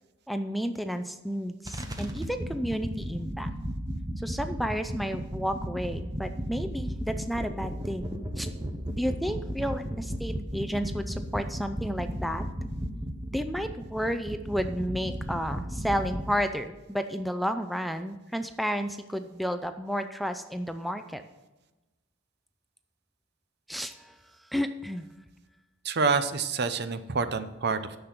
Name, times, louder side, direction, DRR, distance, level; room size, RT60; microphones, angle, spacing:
voice 1, 0.3-3.5 4.2-8.5 9.0-12.4 13.3-21.2 23.7-24.1 24.5-25.0, equal, ahead, 8 dB, 0.4 m, -32 dB
sound 1, 1.7-16.3, equal, 20° right, 1.0 m, -35 dB
voice 2, 25.8-28.0, right 4 dB, 55° right, 12 dB, 0.7 m, -27 dB
10.5 x 6.9 x 5.9 m, 1.1 s
head